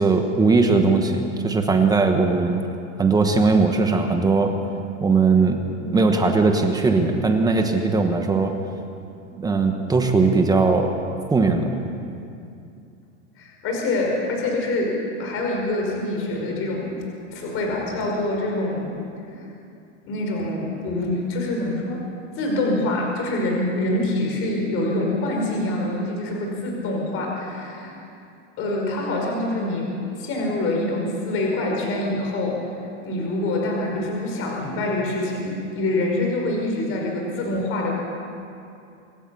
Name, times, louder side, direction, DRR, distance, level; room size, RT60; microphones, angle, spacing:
voice 1, 0.0-2.7 3.0-4.5 5.0-8.5 9.4-10.9 11.3-11.8, right 4 dB, 10° right, 4 dB, 1.2 m, -19 dB
voice 2, 13.4-16.9 17.3-18.9 19.3-19.5 20.1-22.0 22.4-27.9 28.6-32.6 33.0-37.9, left 2 dB, 35° left, 0 dB, 5.4 m, -25 dB
26.0 x 13.0 x 8.5 m, 2.6 s
supercardioid pair, 155°, 37 cm